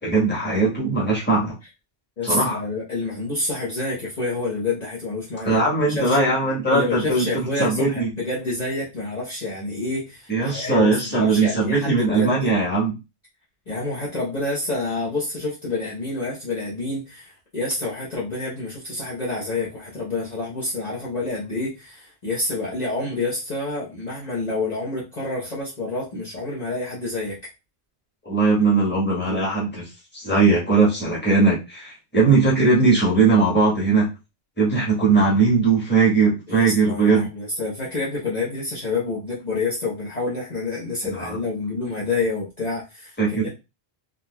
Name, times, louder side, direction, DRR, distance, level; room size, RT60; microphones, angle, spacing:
voice 1, 0.0-1.5 2.2-2.6 5.4-7.3 7.6-8.1 10.3-12.9 28.2-29.8 30.1-34.1 34.6-37.3 41.1-41.4 43.2-43.5, right 3 dB, 10° left, -4 dB, 1.2 m, -19 dB
voice 2, 2.2-5.6 5.9-6.2 6.7-12.5 13.7-27.4 36.5-43.5, left 2 dB, 40° left, -7 dB, 1.0 m, -28 dB
3.8 x 2.8 x 2.2 m, 0.26 s
omnidirectional pair, 1.1 m